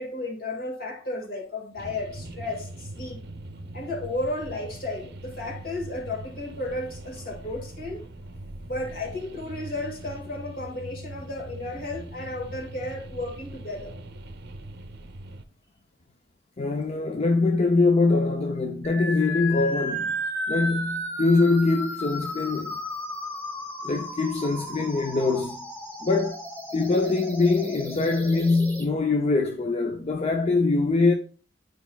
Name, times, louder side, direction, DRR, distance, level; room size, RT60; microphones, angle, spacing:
voice 1, 0.0-3.2 3.7-8.0 8.7-13.9, left 2 dB, 50° left, 1.8 m, -33 dB
sound 1, 1.8-15.5, right 1 dB, 60° right, 0.6 m, -41 dB
voice 2, 16.6-20.1 20.5-22.8 23.8-25.7 26.0-26.4 26.7-31.1, left 3 dB, 35° left, 0.5 m, -23 dB
sound 2, 18.8-28.8, left 1 dB, 10° left, 1.9 m, -34 dB
9.3 x 4.7 x 2.2 m
head